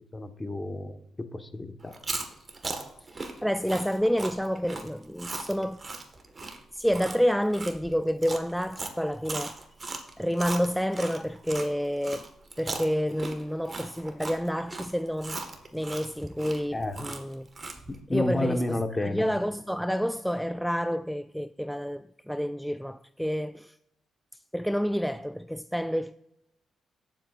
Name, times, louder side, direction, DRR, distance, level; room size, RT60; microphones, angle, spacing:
voice 1, 0.1-1.9 16.7-17.0 17.9-19.2, left 2 dB, 25° left, 1.2 m, -31 dB
Chewing mastication, 1.8-11.7 12.0-18.0, right 3 dB, 40° right, 1.5 m, -38 dB
voice 2, 3.1-5.8 6.7-9.6 10.2-12.3 12.6-15.4 15.7-17.5 18.1-23.8 24.5-26.1, equal, ahead, 0.3 m, -29 dB
18.0 x 7.6 x 2.5 m
supercardioid pair, 50°, 0 cm